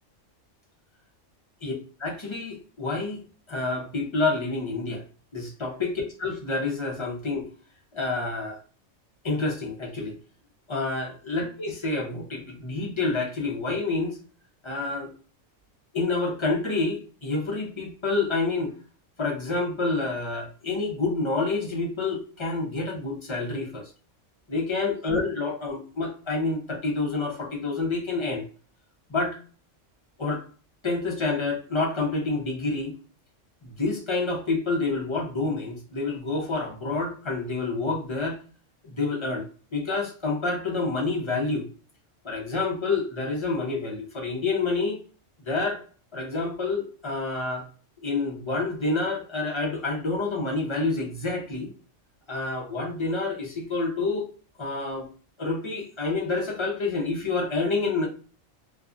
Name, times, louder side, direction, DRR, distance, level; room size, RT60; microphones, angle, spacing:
voice 1, 2.0-3.2 3.5-5.0 5.3-5.9 6.2-7.5 7.9-8.6 9.2-10.2 10.7-14.2 14.6-15.1 15.9-18.7 19.2-23.8 24.5-28.4 29.1-29.4 30.2-30.4 30.8-32.9 33.6-38.4 38.8-39.4 39.7-41.6 42.2-45.0 45.5-45.8 46.1-47.6 48.0-51.7 52.3-54.3 54.6-55.1 55.4-58.1, left 3 dB, 35° left, 0.5 m, -28 dB
2.6 x 2.3 x 2.4 m
omnidirectional pair, 1.3 m